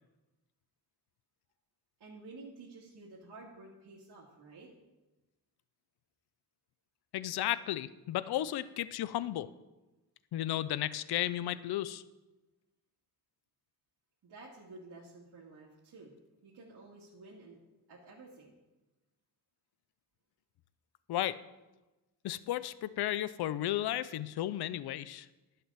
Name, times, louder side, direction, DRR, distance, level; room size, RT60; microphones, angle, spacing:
voice 1, 2.0-4.7 14.2-16.1 16.4-17.6 17.9-18.5, right 3 dB, 75° right, -6 dB, 2.2 m, -52 dB
voice 2, 7.1-9.5 10.3-12.0 21.1-21.4 22.2-25.3, left 13 dB, 70° left, 16 dB, 0.5 m, -34 dB
11.0 x 5.8 x 7.4 m, 1.1 s
cardioid pair, 110°, 40 cm